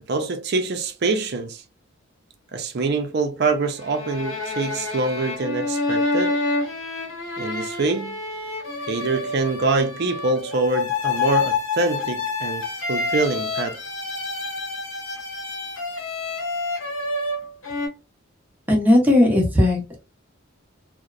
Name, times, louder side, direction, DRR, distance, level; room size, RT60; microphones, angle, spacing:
voice 1, 0.1-1.6 2.5-6.4 7.4-8.2 8.9-13.8, right 3 dB, 55° right, 0.5 m, -25 dB
sound 1, 3.6-17.9, left 3 dB, 80° left, 0.9 m, -28 dB
voice 2, 18.7-20.0, left 1 dB, 10° right, 0.7 m, -17 dB
2.8 x 2.0 x 2.4 m
head